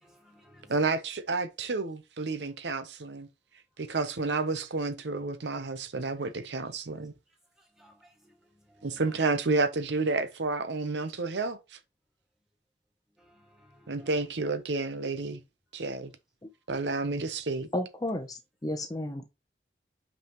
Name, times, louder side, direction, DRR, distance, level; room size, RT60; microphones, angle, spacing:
voice 1, 0.0-0.9 7.8-9.2 13.2-14.2, equal, 5° right, 1.9 m, -58 dB
voice 2, 0.7-3.3 3.8-7.1 8.8-11.8 13.9-15.4 15.7-16.1 16.7-17.7, right 3 dB, 85° right, 0.8 m, -30 dB
voice 3, 17.7-19.3, left 1 dB, 20° left, 0.7 m, -33 dB
5.7 x 5.4 x 3.0 m
head